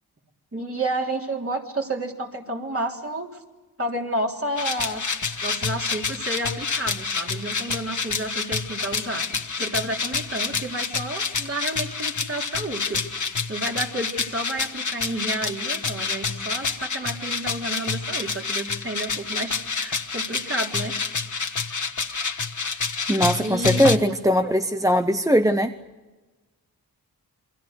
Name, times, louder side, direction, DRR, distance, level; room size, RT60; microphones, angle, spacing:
voice 1, 0.5-3.4 3.8-5.2 5.4-9.3 9.6-13.0 13.5-20.9 23.4-23.9 24.4-24.5, right 1 dB, 35° right, 1 dB, 3.5 m, -30 dB
sound 1, 4.6-24.0, left 4 dB, 50° left, 1.6 m, -28 dB
voice 2, 23.1-25.8, equal, 10° right, 8 dB, 0.8 m, -20 dB
28.0 x 23.0 x 6.6 m, 1.2 s
wide cardioid pair, 85°, 40 cm